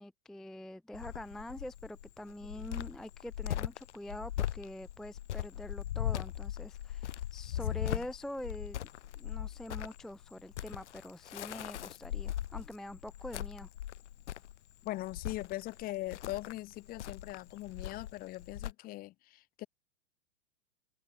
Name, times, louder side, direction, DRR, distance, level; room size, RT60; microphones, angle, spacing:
voice 1, 0.0-8.8 9.1-13.7, left 1 dB, ahead, 0.5 m, -45 dB
Cricket, 0.9-18.7, left 12 dB, 70° left, 0.6 m, -39 dB
voice 2, 14.8-19.7, left 17 dB, 25° left, 0.8 m, -41 dB
figure-of-eight pair, 110°, 36 cm